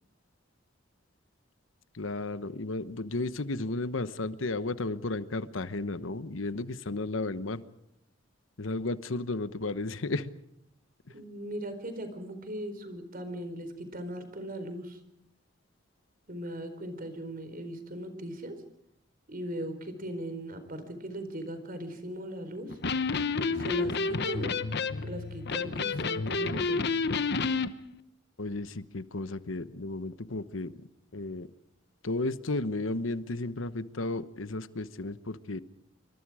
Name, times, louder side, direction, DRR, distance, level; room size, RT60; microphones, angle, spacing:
voice 1, 1.9-7.6 8.6-10.3 28.4-30.7 31.1-31.5 32.0-35.6, left 2 dB, 85° left, 13 dB, 1.1 m, -33 dB
voice 2, 11.1-15.0 16.3-18.5 19.3-22.8 23.4-24.6 25.0-26.8, right 1 dB, 45° right, 9 dB, 4.4 m, -39 dB
Electric guitar, 22.7-27.7, left 4 dB, 60° left, 1.1 m, -30 dB
27.0 x 24.5 x 5.0 m, 0.77 s
head